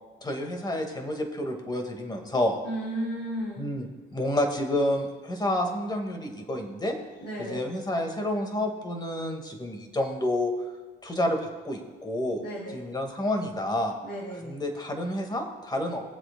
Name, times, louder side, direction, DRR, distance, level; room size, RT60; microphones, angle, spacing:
voice 1, 0.2-2.6 3.6-7.0 7.4-10.5 11.0-12.4 12.7-14.0 14.5-16.0, left 1 dB, 20° left, 4 dB, 1.8 m, -29 dB
voice 2, 2.6-3.6 7.2-7.6 12.4-12.8 14.0-14.6, right 1 dB, 65° left, -4 dB, 2.8 m, -34 dB
21.5 x 7.7 x 2.2 m, 1.3 s
cardioid pair, 90°, 20 cm